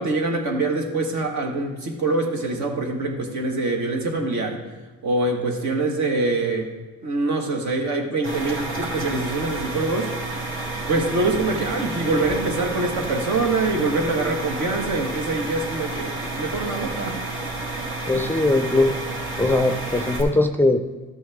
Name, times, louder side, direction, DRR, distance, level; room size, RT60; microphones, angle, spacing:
voice 1, 0.0-4.6 5.0-6.7 7.0-10.1 10.9-17.2, right 2 dB, 65° right, 2 dB, 1.6 m, -24 dB
sound 1, 8.2-20.2, right 2 dB, 40° right, 2.3 m, -30 dB
voice 2, 18.1-18.9 19.4-20.8, left 2 dB, 5° left, 6 dB, 0.4 m, -20 dB
13.0 x 6.3 x 3.6 m, 1.2 s
cardioid pair, 90°, 30 cm